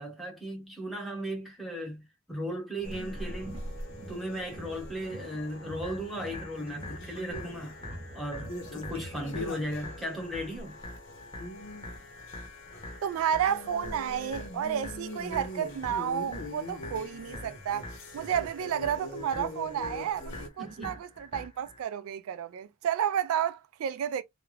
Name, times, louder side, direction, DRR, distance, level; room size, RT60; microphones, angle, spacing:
voice 1, 0.0-3.7 4.1-7.8 8.1-10.8 20.6-21.0, equal, ahead, 0.9 m, -36 dB
sound 1, 2.8-20.5, left 1 dB, 60° left, 0.7 m, -43 dB
sound 2, 2.8-9.3, right 1 dB, 25° right, 0.7 m, -46 dB
sound 3, 5.8-21.8, left 2 dB, 25° left, 0.7 m, -45 dB
voice 2, 13.0-24.2, right 9 dB, 70° right, 0.3 m, -31 dB
2.3 x 2.2 x 3.2 m
head